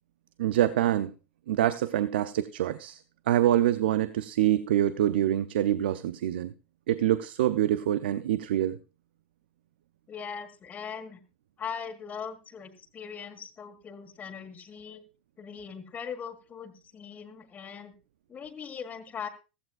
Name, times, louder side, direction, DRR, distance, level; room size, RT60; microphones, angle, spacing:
voice 1, 0.4-1.1 1.5-6.5 6.9-8.8, right 12 dB, 70° right, 0.5 m, -25 dB
voice 2, 10.1-11.2 11.6-15.0 15.4-17.9 18.3-19.3, left 7 dB, 30° left, 1.8 m, -40 dB
15.5 x 14.5 x 2.4 m
hypercardioid pair, 85°, 6 cm